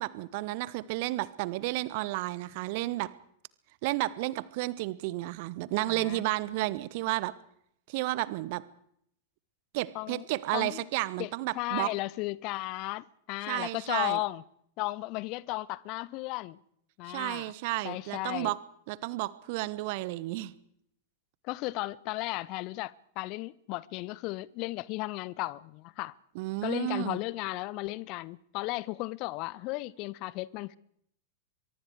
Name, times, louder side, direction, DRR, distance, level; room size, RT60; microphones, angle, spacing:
voice 1, 0.0-3.1 3.8-7.3 7.9-8.6 9.7-11.9 13.5-14.2 17.1-18.6 18.9-20.5 26.3-27.2, right 18 dB, 50° right, 1.2 m, -32 dB
voice 2, 5.8-6.2 9.9-10.3 10.5-10.9 11.2-14.4 14.8-16.6 17.0-17.5 17.8-18.5 21.4-26.2 26.6-30.8, left 20 dB, 40° left, 0.7 m, -35 dB
24.0 x 23.0 x 4.8 m
figure-of-eight pair, 90°, 0 cm